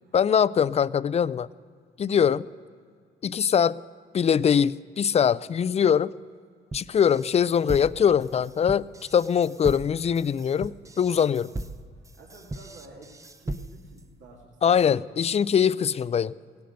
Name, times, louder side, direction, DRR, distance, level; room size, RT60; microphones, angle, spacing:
voice 1, 0.1-1.5 2.0-2.4 3.2-3.8 4.1-6.1 6.7-8.8 9.1-11.5 14.6-16.3, left 8 dB, 35° left, 19 dB, 0.3 m, -22 dB
voice 2, 2.1-2.6 11.6-11.7 11.9-15.2 15.6-15.9, right 2 dB, 75° right, -2 dB, 2.2 m, -51 dB
sound 1, 6.7-14.0, right 2 dB, 15° right, 0.6 m, -38 dB
17.0 x 10.5 x 6.4 m, 2.1 s
cardioid pair, 90°, 20 cm